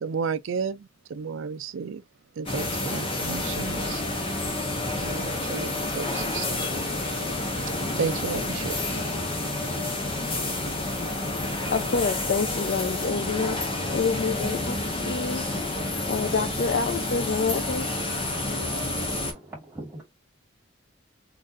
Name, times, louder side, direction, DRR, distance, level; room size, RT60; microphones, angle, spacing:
voice 1, 0.0-2.0 2.4-4.0 4.9-6.7 7.9-8.8, right 6 dB, 70° right, 0.4 m, -32 dB
sound 1, 2.5-19.3, left 2 dB, 25° left, 1.1 m, -29 dB
voice 2, 11.7-15.4 16.1-17.9, left 4 dB, 50° left, 0.4 m, -27 dB
voice 3, 19.0-20.0, right 1 dB, 10° right, 2.1 m, -42 dB
4.0 x 3.2 x 2.5 m
head